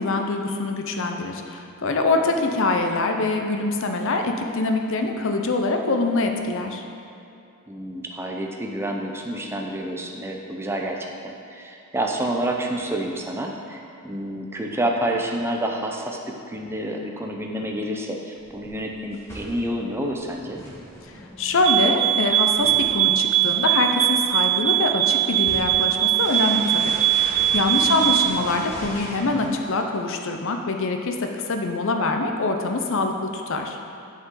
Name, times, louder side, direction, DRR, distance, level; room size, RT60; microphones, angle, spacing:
voice 1, 0.0-6.8 21.4-33.8, left 3 dB, 65° left, 4 dB, 0.7 m, -24 dB
voice 2, 7.7-20.6 27.7-28.1, right 1 dB, 10° right, 0 dB, 0.6 m, -29 dB
sound 1, 18.4-29.5, equal, 15° left, 1.8 m, -40 dB
sound 2, 21.6-28.4, right 13 dB, 65° right, 0.3 m, -21 dB
11.0 x 5.5 x 3.8 m, 2.7 s
head